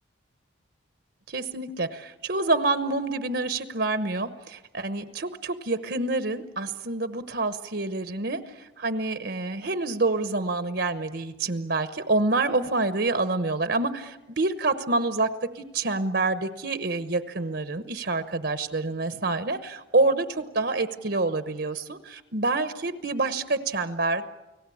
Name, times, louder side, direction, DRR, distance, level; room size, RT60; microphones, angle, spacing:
voice 1, 1.3-24.3, right 2 dB, 55° right, 10 dB, 1.0 m, -27 dB
29.5 x 19.0 x 8.5 m, 1.1 s
head